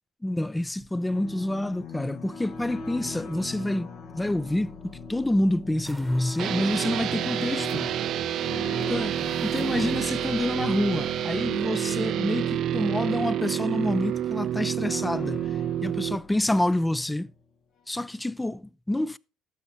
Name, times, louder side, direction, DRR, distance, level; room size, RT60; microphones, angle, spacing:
voice 1, 0.2-8.0 8.9-9.1 9.4-15.5 15.8-17.3 17.9-19.2, left 1 dB, 10° left, 0.4 m, -27 dB
sound 1, 0.8-17.4, left 5 dB, 70° left, 1.4 m, -41 dB
sound 2, 5.8-11.3, right 2 dB, 10° right, 1.0 m, -47 dB
sound 3, 6.4-16.2, right 11 dB, 65° right, 0.5 m, -28 dB
18.0 x 7.0 x 2.8 m
supercardioid pair, 75°, 0 cm